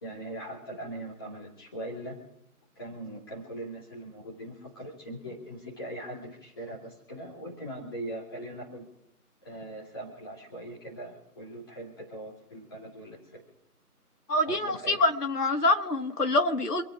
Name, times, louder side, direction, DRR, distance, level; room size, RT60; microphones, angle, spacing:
voice 1, 0.0-2.2 2.8-8.8 9.4-13.4 14.4-15.0, right 1 dB, 15° left, -4 dB, 2.7 m, -40 dB
voice 2, 14.3-16.8, left 2 dB, 85° left, 5 dB, 2.1 m, -25 dB
27.0 x 9.3 x 5.0 m, 0.77 s
figure-of-eight pair, 170°, 45 cm